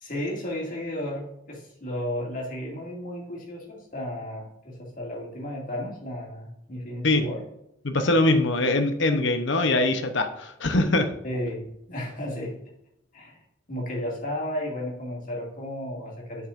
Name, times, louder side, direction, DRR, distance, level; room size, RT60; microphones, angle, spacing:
voice 1, 0.0-7.4 11.2-12.5 13.1-13.4 13.7-16.5, left 1 dB, 40° left, -2 dB, 2.3 m, -33 dB
voice 2, 7.8-11.1, left 2 dB, 60° left, 7 dB, 0.9 m, -22 dB
8.6 x 6.7 x 2.6 m, 0.82 s
head